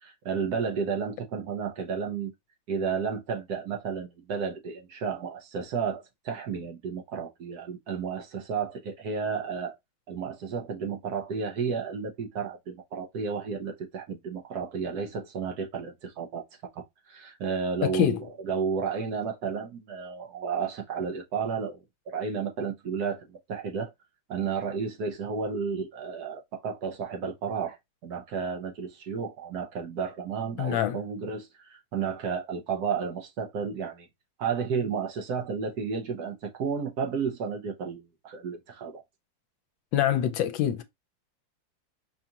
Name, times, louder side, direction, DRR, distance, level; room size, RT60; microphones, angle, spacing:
voice 1, 0.0-2.3 2.7-9.7 10.1-16.4 16.7-18.2 18.4-23.9 24.3-27.8 28.0-34.1 34.4-39.0, right 6 dB, 65° right, 1.2 m, -32 dB
voice 2, 17.8-18.3 30.6-31.0 39.9-40.8, left 11 dB, 80° left, 1.3 m, -25 dB
5.3 x 2.4 x 2.8 m
omnidirectional pair, 2.1 m